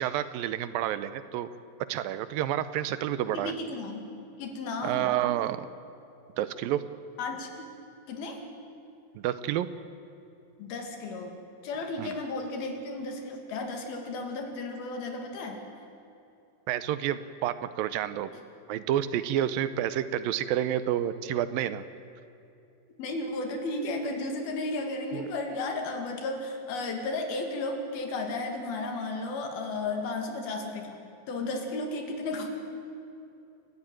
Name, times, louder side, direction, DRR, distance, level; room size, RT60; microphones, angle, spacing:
voice 1, 0.0-1.5 1.9-3.5 4.8-5.6 6.4-6.8 9.2-9.7 12.0-12.1 16.7-18.3 18.7-21.8 25.1-25.2, right 11 dB, 80° right, 13 dB, 2.4 m, -29 dB
voice 2, 3.3-4.1 4.4-5.1 7.2-7.7 8.1-8.4 10.6-11.4 11.6-15.6 23.0-31.0 31.3-32.5, left 2 dB, 85° left, 4 dB, 4.2 m, -34 dB
29.5 x 13.5 x 9.2 m, 2.7 s
omnidirectional pair, 4.2 m